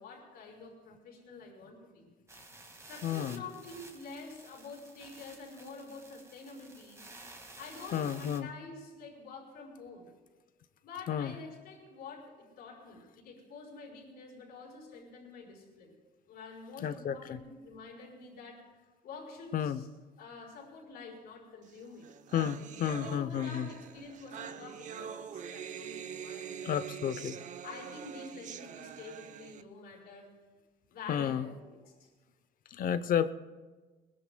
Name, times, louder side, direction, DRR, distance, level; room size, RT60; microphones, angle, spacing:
voice 1, 0.0-2.0 2.8-7.1 7.6-10.1 10.8-15.9 16.3-19.9 20.2-22.1 22.8-27.0 27.6-30.3 30.9-32.1, left 4 dB, 75° left, -1 dB, 4.5 m, -48 dB
sound 1, 2.3-8.4, right 2 dB, 15° right, 1.9 m, -52 dB
voice 2, 3.0-3.4 7.9-8.5 11.1-11.3 16.8-17.4 19.5-19.8 22.3-23.7 26.6-27.4 31.1-31.5 32.7-33.3, left 9 dB, 55° left, 13 dB, 0.7 m, -31 dB
sound 2, 21.7-21.8 22.0-29.6, right 8 dB, 45° right, 0.7 m, -44 dB
21.5 x 21.0 x 2.2 m, 1.3 s
cardioid pair, 110°, 17 cm